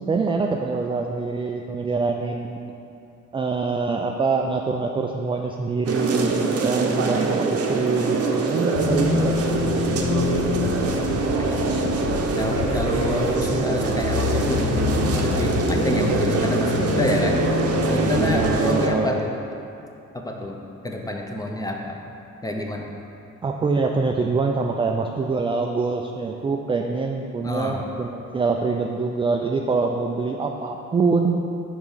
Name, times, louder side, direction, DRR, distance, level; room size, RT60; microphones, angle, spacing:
voice 1, 0.0-2.8 3.3-9.4 18.3-19.2 23.4-31.4, right 4 dB, 20° right, 2 dB, 0.3 m, -25 dB
sound 1, 5.9-18.9, right 4 dB, 50° right, 0.7 m, -24 dB
sound 2, 8.7-18.6, left 5 dB, 55° left, 0.6 m, -27 dB
voice 2, 10.4-12.0 12.4-14.8 15.2-17.5 17.9-19.3 20.1-22.0 22.4-22.9 27.4-27.8 29.4-29.5, left 1 dB, 10° left, 1 dB, 0.7 m, -28 dB
4.9 x 4.6 x 5.6 m, 2.7 s
cardioid pair, 90°, 30 cm